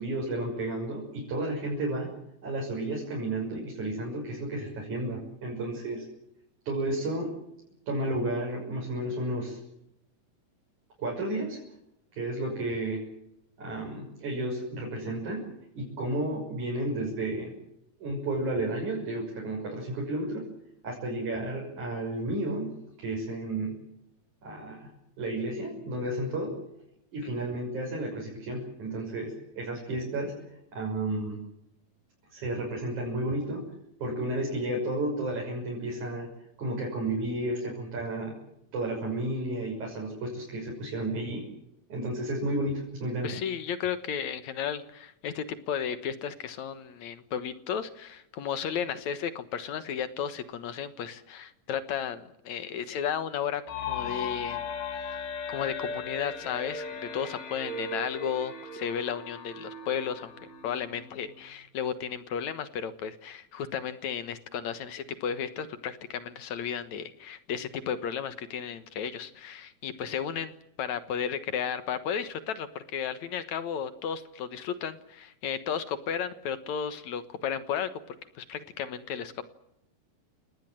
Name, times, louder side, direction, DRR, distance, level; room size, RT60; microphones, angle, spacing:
voice 1, 0.0-2.1 2.4-6.0 6.7-7.3 7.9-9.6 11.0-11.6 12.1-13.1 13.6-15.5 15.8-17.5 18.0-20.5 20.8-22.7 23.0-23.8 24.4-24.9 25.2-26.5 27.1-30.3 30.7-31.4 32.3-33.6 34.0-36.3 36.6-38.3 38.7-41.4 41.9-43.3, right 1 dB, 55° right, -2 dB, 7.7 m, -32 dB
voice 2, 43.2-53.6 53.9-54.6 54.9-55.2 55.5-60.3 60.6-79.4, left 8 dB, 60° left, 12 dB, 2.3 m, -34 dB
sound 1, 53.7-61.3, left 4 dB, 80° left, 5.1 m, -37 dB
29.0 x 19.0 x 7.7 m, 0.81 s
omnidirectional pair, 4.2 m